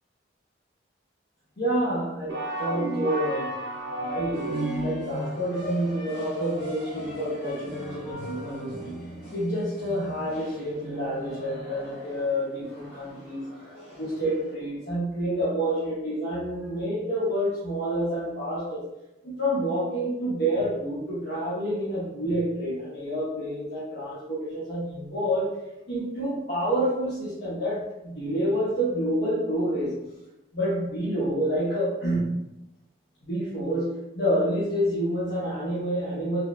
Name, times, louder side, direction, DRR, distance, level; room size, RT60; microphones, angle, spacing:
voice 1, 1.6-3.5 4.0-4.6 4.8-8.9 9.3-13.5 14.0-18.8 19.2-25.5 25.9-29.9 30.5-32.3 33.2-36.4, equal, 60° left, -9 dB, 0.6 m, -28 dB
sound 1, 2.3-5.2, right 1 dB, 65° right, 0.5 m, -31 dB
sound 2, 4.3-14.5, right 1 dB, 30° left, 0.8 m, -40 dB
2.9 x 2.0 x 2.2 m, 0.92 s
head